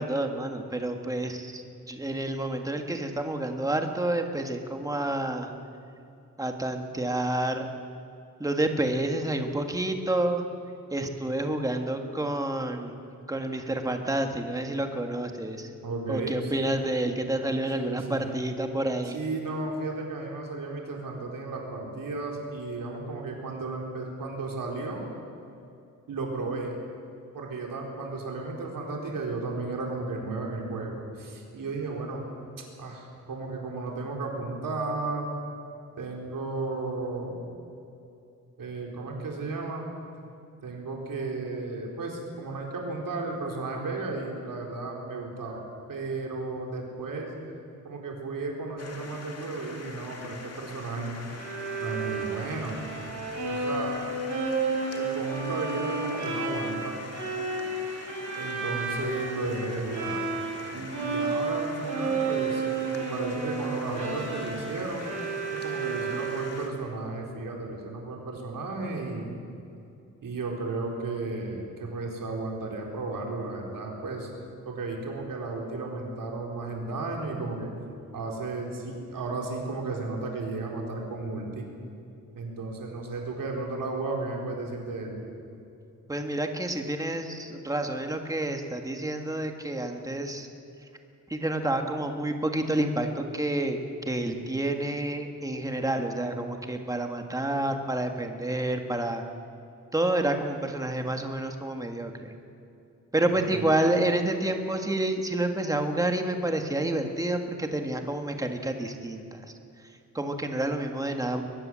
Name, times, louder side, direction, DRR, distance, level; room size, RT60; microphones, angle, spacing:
voice 1, 0.0-5.5 6.4-7.7 8.4-10.4 10.9-13.0 13.3-15.7 16.1-19.2 86.1-90.5 91.3-93.8 94.0-99.2 99.9-102.3 103.1-111.4, right 1 dB, 10° right, 4 dB, 1.7 m, -29 dB
voice 2, 15.8-16.8 17.8-18.3 19.1-25.1 26.1-26.8 27.3-32.2 32.8-35.3 36.0-37.4 38.6-39.9 40.6-47.3 47.8-51.2 51.8-52.8 53.5-54.0 54.9-57.0 58.4-60.2 60.7-62.6 62.9-65.1 65.6-69.4 70.2-74.3 74.6-77.7 78.1-81.7 82.4-85.2 103.5-103.6, right 3 dB, 85° right, 0 dB, 4.2 m, -34 dB
sound 1, 48.8-66.7, left 3 dB, 50° left, 2.5 m, -44 dB
Bowed string instrument, 51.3-60.7 60.9-66.7, right 4 dB, 60° right, 5.7 m, -32 dB
22.5 x 20.5 x 7.6 m, 2.6 s
wide cardioid pair, 175°, 32 cm